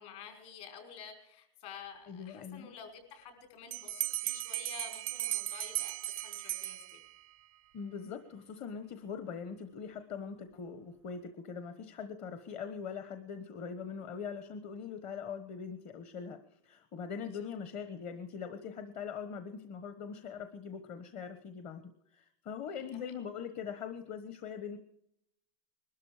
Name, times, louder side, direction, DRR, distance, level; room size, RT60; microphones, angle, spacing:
voice 1, 0.0-7.0 17.3-17.5 22.7-22.9, left 6 dB, 55° left, 5 dB, 5.3 m, -50 dB
voice 2, 2.1-2.7 7.7-24.8, left 6 dB, 40° left, 9 dB, 1.2 m, -42 dB
Bell, 3.7-7.3, right 16 dB, 85° right, 0.5 m, -37 dB
21.5 x 13.0 x 5.0 m, 0.77 s
supercardioid pair, 140°, 18 cm